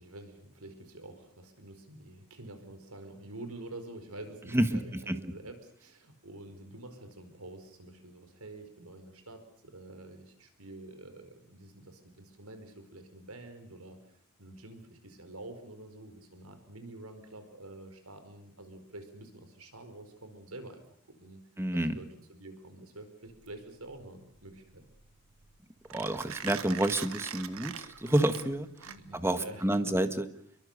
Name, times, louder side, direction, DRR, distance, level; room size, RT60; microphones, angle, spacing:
voice 1, 0.0-14.0 14.4-21.4 21.7-24.9 28.8-29.9, right 2 dB, 90° right, 8 dB, 4.8 m, -48 dB
voice 2, 21.6-22.0 25.9-28.7 29.1-30.3, right 1 dB, 10° right, 9 dB, 1.7 m, -29 dB
Mechanisms, 23.3-29.4, right 8 dB, 70° right, 1.5 m, -43 dB
29.0 x 23.0 x 6.8 m, 0.64 s
head